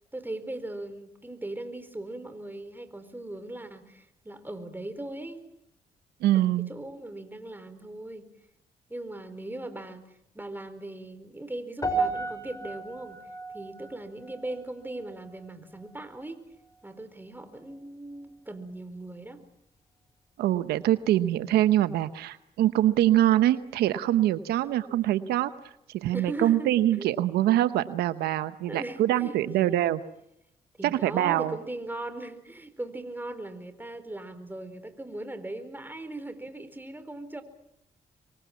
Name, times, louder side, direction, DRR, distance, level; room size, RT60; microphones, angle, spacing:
voice 1, 0.1-5.4 6.3-8.3 8.9-10.0 10.3-13.2 13.5-16.4 16.8-19.4 24.6-25.0 26.1-26.7 27.0-27.1 28.7-29.9 30.8-37.4, right 2 dB, 10° right, 10 dB, 4.3 m, -39 dB
voice 2, 6.2-6.7 20.4-25.5 25.9-30.0 30.8-31.5, right 13 dB, 90° right, 12 dB, 0.9 m, -24 dB
sound 1, 11.8-16.2 16.5-16.9 17.5-17.6, right 3 dB, 20° left, 5.5 m, -35 dB
26.0 x 23.5 x 7.3 m, 0.80 s
supercardioid pair, 65°, 16 cm